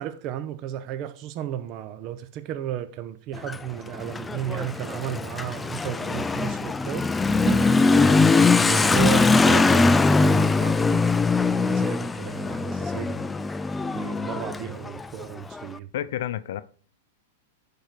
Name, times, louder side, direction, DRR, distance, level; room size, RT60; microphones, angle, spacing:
voice 1, 0.0-7.1 7.4-7.7 8.6-11.2 11.5-13.7 13.9-15.9, right 11 dB, 40° right, 0.6 m, -34 dB
Motorcycle / Accelerating revving vroom, 3.3-15.7, left 3 dB, 10° left, 0.3 m, -21 dB
voice 2, 15.9-16.6, left 12 dB, 60° left, 0.6 m, -30 dB
11.0 x 4.7 x 4.7 m
hypercardioid pair, 100°, 0 cm